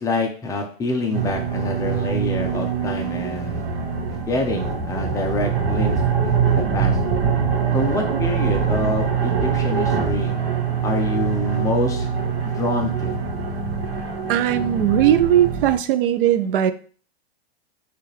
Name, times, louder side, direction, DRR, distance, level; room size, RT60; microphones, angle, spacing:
voice 1, 0.0-3.6 4.1-7.0 7.7-10.3 10.8-12.1 12.4-13.2, left 2 dB, 10° left, 3 dB, 0.5 m, -26 dB
sound 1, 1.1-15.8, right 6 dB, 75° right, 1.1 m, -23 dB
voice 2, 14.3-16.7, right 11 dB, 60° right, 12 dB, 0.5 m, -18 dB
4.3 x 2.5 x 3.2 m, 0.42 s
hypercardioid pair, 135°, 31 cm